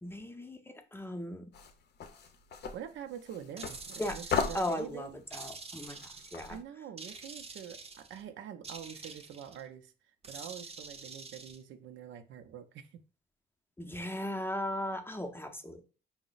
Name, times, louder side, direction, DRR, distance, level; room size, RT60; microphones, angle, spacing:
voice 1, 0.0-1.5 4.0-4.2 4.5-6.6 13.8-15.8, left 1 dB, 10° left, 0.6 m, -37 dB
sound 1, 1.5-6.6, left 6 dB, 55° left, 0.6 m, -38 dB
voice 2, 2.7-5.2 6.5-9.9 10.3-12.9, right 9 dB, 70° right, 0.5 m, -45 dB
sound 2, 3.6-4.9 5.3-6.5 7.0-8.2 8.6-9.6 10.2-11.6, right 4 dB, 30° right, 0.6 m, -47 dB
4.7 x 2.0 x 3.9 m
cardioid pair, 90°, 20 cm